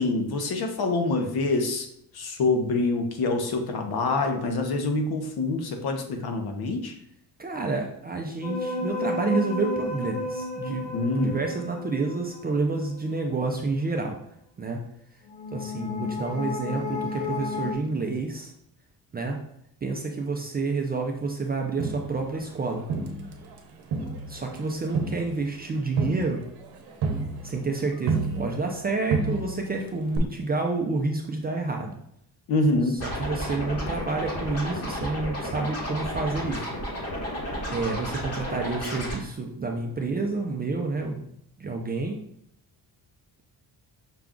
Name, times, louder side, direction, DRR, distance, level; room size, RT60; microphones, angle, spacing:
voice 1, 0.0-1.9 2.1-6.9 10.9-11.4 32.5-33.0, left 3 dB, 60° left, 4 dB, 0.9 m, -26 dB
voice 2, 7.4-14.2 14.6-14.8 15.5-18.5 19.1-19.4 19.8-22.8 24.3-26.4 27.4-32.0 32.9-36.6 37.7-41.3 41.6-42.2, right 3 dB, 25° right, 2 dB, 0.4 m, -29 dB
sound 1, 8.4-12.9 15.3-17.7, left 3 dB, 85° left, 0.9 m, -32 dB
Crowd, 21.8-23.6 23.9-28.8 29.1-29.8 30.1-30.2, right 4 dB, 70° right, 0.8 m, -31 dB
Scratching (performance technique), 33.0-39.2, equal, 35° left, 1.2 m, -32 dB
5.8 x 2.3 x 3.7 m, 0.75 s
cardioid pair, 145°, 42 cm